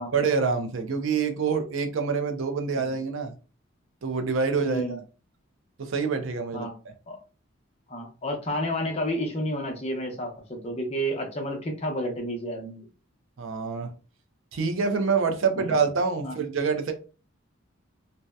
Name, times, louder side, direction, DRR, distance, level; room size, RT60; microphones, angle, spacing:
voice 1, 0.1-3.3 4.0-5.0 5.8-6.7 13.4-13.9 14.5-16.9, right 5 dB, 75° right, 0.4 m, -26 dB
voice 2, 4.6-5.0 6.5-6.7 7.1-7.2 7.9-12.9 15.5-15.8 16.2-16.4, equal, 30° left, 0.6 m, -31 dB
2.7 x 2.0 x 2.2 m
head